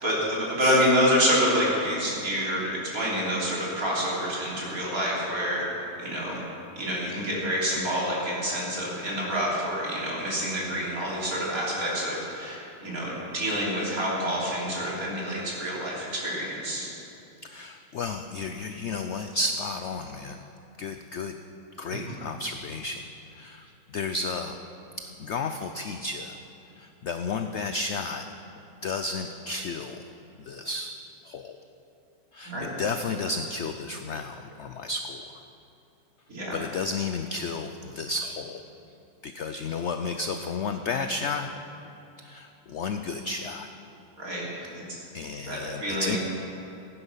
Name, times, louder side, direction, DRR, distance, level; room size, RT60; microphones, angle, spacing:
voice 1, 0.0-5.6 6.0-6.4 6.8-16.9 21.9-22.0 32.4-32.7 36.3-36.6 44.2-45.0 45.5-46.2, equal, 55° right, -5 dB, 3.7 m, -27 dB
voice 2, 17.4-20.4 20.8-21.3 21.8-23.7 23.9-24.6 25.2-26.4 26.8-28.3 28.8-30.0 30.4-30.9 31.2-31.6 32.3-35.2 36.5-38.6 39.2-41.5 42.2-43.7 45.1-46.2, left 3 dB, 75° left, 7 dB, 0.6 m, -32 dB
17.0 x 9.8 x 5.7 m, 3.0 s
omnidirectional pair, 1.9 m